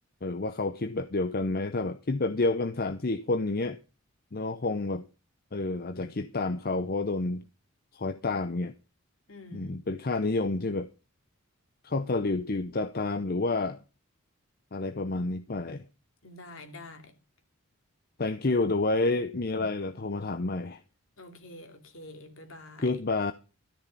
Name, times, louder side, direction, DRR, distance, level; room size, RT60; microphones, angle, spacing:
voice 1, 0.2-3.8 4.3-5.0 5.5-7.4 7.9-8.7 9.5-10.9 11.8-13.8 14.7-15.8 18.2-20.8 22.8-23.3, left 3 dB, 45° left, 0.7 m, -29 dB
voice 2, 9.3-9.8 16.2-17.1 21.2-23.0, left 2 dB, 65° left, 2.7 m, -47 dB
13.0 x 10.5 x 5.4 m
head